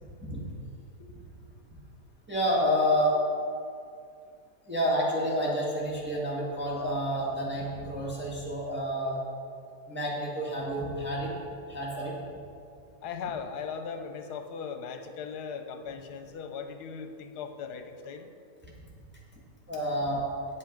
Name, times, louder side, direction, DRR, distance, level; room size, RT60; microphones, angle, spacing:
voice 1, 2.3-3.2 4.7-9.2 9.9-11.3 11.7-12.1 19.7-20.2, equal, 5° right, -5 dB, 1.5 m, -29 dB
voice 2, 13.0-18.3, left 6 dB, 80° left, 7 dB, 1.3 m, -38 dB
8.8 x 8.2 x 5.2 m, 2.4 s
omnidirectional pair, 1.7 m